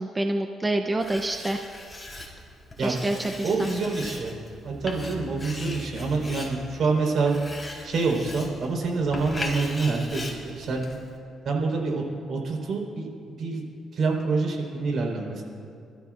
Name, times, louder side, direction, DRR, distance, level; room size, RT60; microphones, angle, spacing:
voice 1, 0.0-1.6 2.8-3.7, right 1 dB, 20° right, 5 dB, 0.7 m, -27 dB
Writing, 1.0-11.2, left 1 dB, 15° left, 4.0 m, -39 dB
voice 2, 3.4-4.4 4.6-7.4 7.8-10.8 11.4-12.0 12.3-13.1 13.4-13.7 13.9-15.4, right 4 dB, 60° right, 0 dB, 4.4 m, -26 dB
28.5 x 14.0 x 2.6 m, 2.4 s
cardioid pair, 90°, 0 cm